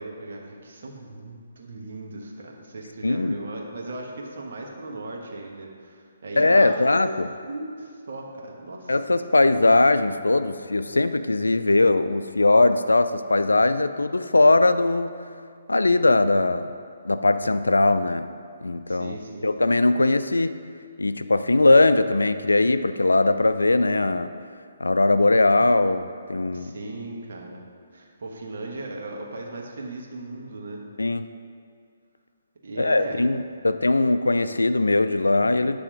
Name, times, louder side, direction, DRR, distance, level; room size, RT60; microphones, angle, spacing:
voice 1, 0.0-7.1 7.4-9.0 18.9-19.5 26.5-27.6 27.9-30.9 32.6-33.3, right 2 dB, 60° right, -1 dB, 1.2 m, -37 dB
voice 2, 3.0-3.4 6.4-7.3 8.9-15.2 15.7-16.7 17.0-18.3 18.6-19.2 19.4-20.6 21.0-24.3 24.8-26.7 31.0-31.3 32.8-35.8, left 2 dB, 85° left, 11 dB, 0.3 m, -20 dB
9.8 x 3.4 x 5.0 m, 2.2 s
figure-of-eight pair, 135°, 0 cm